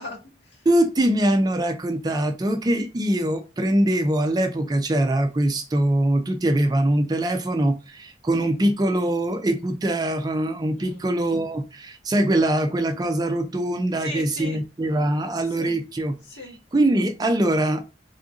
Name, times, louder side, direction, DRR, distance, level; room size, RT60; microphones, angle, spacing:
voice 1, 0.0-0.7 10.8-11.1 14.0-14.6 15.5-15.8 16.2-16.6, left 1 dB, 75° left, 1.7 m, -38 dB
voice 2, 0.7-16.2 16.7-17.8, right 1 dB, 20° right, 0.4 m, -22 dB
3.5 x 2.7 x 3.6 m
head